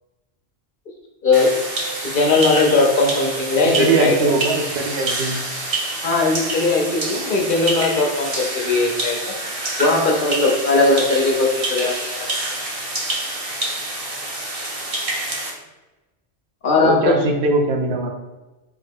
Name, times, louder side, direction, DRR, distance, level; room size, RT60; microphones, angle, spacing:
voice 1, 1.2-1.6 2.0-4.3 6.0-9.3 9.8-12.3 16.6-17.2, left 3 dB, 60° left, 0 dB, 0.7 m, -19 dB
sound 1, 1.3-15.5, right 2 dB, 40° right, 0.5 m, -27 dB
voice 2, 3.8-5.4 16.8-18.1, right 3 dB, 75° right, 3 dB, 0.8 m, -20 dB
3.4 x 2.2 x 3.4 m, 1.1 s
omnidirectional pair, 1.1 m